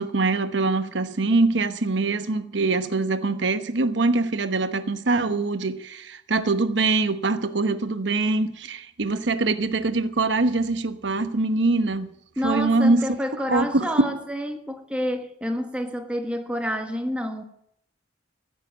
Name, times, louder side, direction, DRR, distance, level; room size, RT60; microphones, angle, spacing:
voice 1, 0.0-12.1 12.4-13.2 13.5-14.2, right 3 dB, 70° right, 1.0 m, -23 dB
voice 2, 12.4-17.4, equal, 5° right, 1.3 m, -29 dB
14.5 x 7.7 x 9.4 m
head